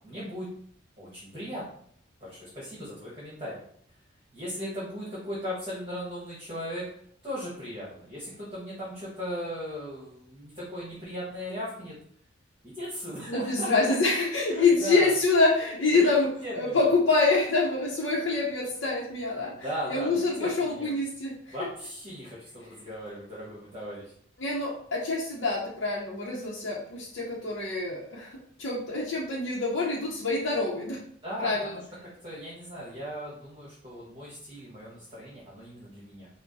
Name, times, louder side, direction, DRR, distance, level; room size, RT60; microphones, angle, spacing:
voice 1, 0.0-0.5 1.0-1.6 2.2-3.6 4.3-6.9 7.2-12.0 12.6-13.9 14.5-15.1 15.9-16.1 16.4-16.9 19.4-20.9 21.5-24.1 31.2-31.8 32.2-36.3, equal, 25° right, -8 dB, 1.3 m, -37 dB
voice 2, 13.3-19.5 19.9-21.7 24.4-31.0 31.4-31.8, left 3 dB, 65° left, -5 dB, 0.8 m, -26 dB
4.5 x 2.2 x 4.1 m, 0.62 s
head